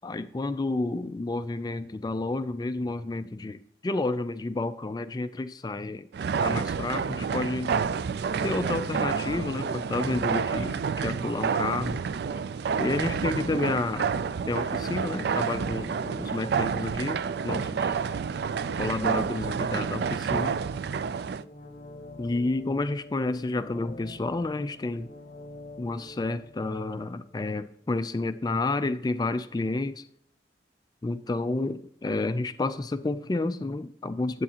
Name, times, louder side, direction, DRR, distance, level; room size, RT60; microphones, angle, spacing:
voice 1, 0.0-6.1 6.4-7.8 8.4-12.0 12.8-14.1 14.5-17.9 18.8-20.6 22.2-25.1 25.8-30.1 31.0-34.4, left 2 dB, 20° left, 12 dB, 0.3 m, -30 dB
sound 1, 6.1-21.4, right 6 dB, 60° right, 0.3 m, -29 dB
sound 2, 21.2-28.1 28.4-28.5, left 2 dB, 40° left, 1.1 m, -47 dB
9.6 x 8.5 x 2.8 m, 0.69 s
head